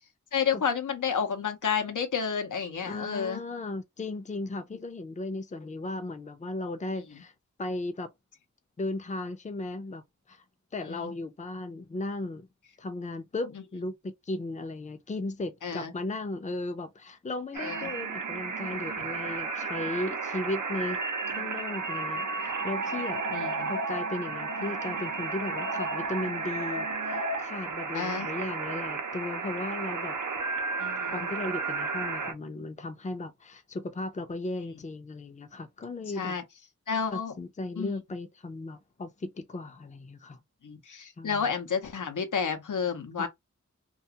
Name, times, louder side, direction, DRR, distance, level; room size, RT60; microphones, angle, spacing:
voice 1, 0.3-3.4 10.9-11.1 15.6-15.9 17.6-17.9 23.3-23.7 27.9-28.3 30.8-31.2 36.2-36.4 36.9-37.3 37.8-38.0 40.6-43.3, left 6 dB, 80° left, 0.6 m, -30 dB
voice 2, 2.8-7.3 7.6-8.1 8.8-10.0 10.3-10.4 10.7-12.5 12.8-21.0 21.3-23.2 23.7-30.2 31.1-36.4 37.1-40.4 41.2-41.5 43.2-43.3, left 2 dB, 25° left, 0.5 m, -36 dB
sound 1, 17.5-32.3, right 4 dB, 85° right, 0.6 m, -33 dB
2.4 x 2.3 x 2.7 m
wide cardioid pair, 60°, 30 cm